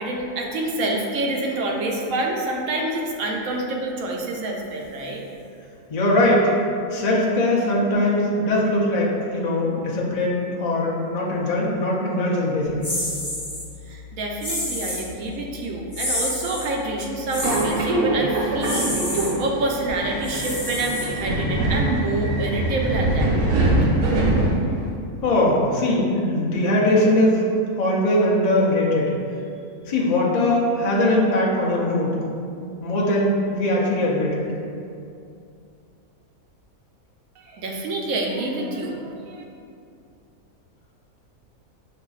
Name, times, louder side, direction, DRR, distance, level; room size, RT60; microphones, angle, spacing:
voice 1, 0.0-5.2 13.9-24.3 37.4-39.4, right 2 dB, 70° right, 0 dB, 1.0 m, -27 dB
voice 2, 5.9-6.5 6.9-12.9 25.2-27.4 27.8-29.1 29.9-32.2 32.8-34.5, left 1 dB, 75° left, -5 dB, 0.3 m, -21 dB
sound 1, 12.8-13.7 14.4-15.1 15.9-16.7 17.3-17.8 18.6-19.3 20.2-21.4, left 1 dB, 15° left, 1.0 m, -28 dB
Subway metro underground, 17.3-24.9, right 2 dB, 90° right, 1.3 m, -23 dB
6.7 x 2.5 x 2.3 m, 2.5 s
omnidirectional pair, 1.6 m